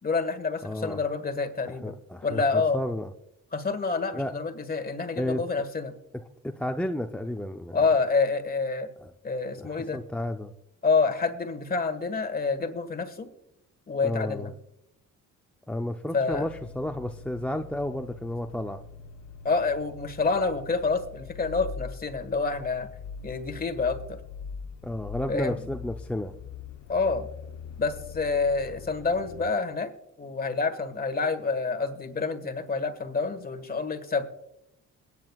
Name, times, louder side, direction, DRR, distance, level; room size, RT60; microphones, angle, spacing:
voice 1, 0.0-1.9 2.2-2.8 3.5-5.9 7.7-8.9 9.2-10.0 10.8-13.3 13.9-14.5 16.1-16.4 19.4-22.9 23.2-24.2 25.3-25.6 26.9-27.3 27.8-29.9 30.2-34.2, left 4 dB, 30° left, 9 dB, 1.5 m, -27 dB
voice 2, 0.6-1.0 1.7-3.1 4.1-4.3 5.1-5.6 6.1-7.9 9.0-9.1 9.6-10.5 14.0-14.5 15.7-18.8 24.8-26.3, left 1 dB, 5° left, 5 dB, 0.6 m, -32 dB
sound 1, 16.3-29.5, left 5 dB, 80° left, 0.7 m, -43 dB
21.5 x 9.7 x 2.4 m, 0.82 s
cardioid pair, 90°, 30 cm